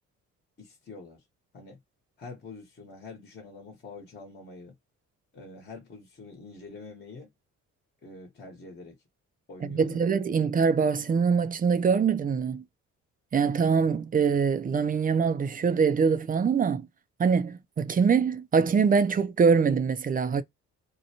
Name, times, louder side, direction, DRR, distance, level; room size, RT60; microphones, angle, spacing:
voice 1, 0.6-1.2 1.5-1.8 2.2-4.7 5.3-7.3 8.0-9.0 9.5-10.0, left 3 dB, 35° left, 1.1 m, -45 dB
voice 2, 9.6-12.6 13.3-16.9 17.2-20.4, right 6 dB, 30° right, 0.4 m, -24 dB
2.6 x 2.2 x 2.8 m
cardioid pair, 90°, 30 cm